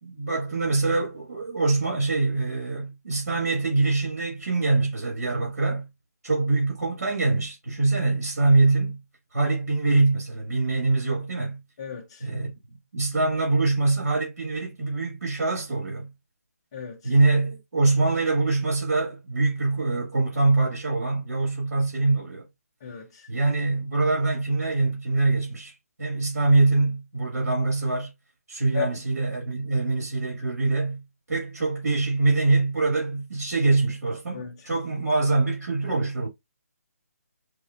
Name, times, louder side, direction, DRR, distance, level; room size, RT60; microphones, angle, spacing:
voice 1, 0.0-5.9 6.2-9.0 9.3-11.6 12.2-12.5 12.9-16.1 17.0-22.5 23.3-25.7 26.0-28.1 28.5-31.0 31.3-36.3, right 3 dB, 80° right, 2.2 m, -24 dB
voice 2, 11.8-12.3 16.7-17.1 22.8-23.3 28.7-28.9 34.3-34.7, left 7 dB, 20° left, 0.5 m, -35 dB
4.8 x 2.7 x 2.5 m
hypercardioid pair, 170°, 9 cm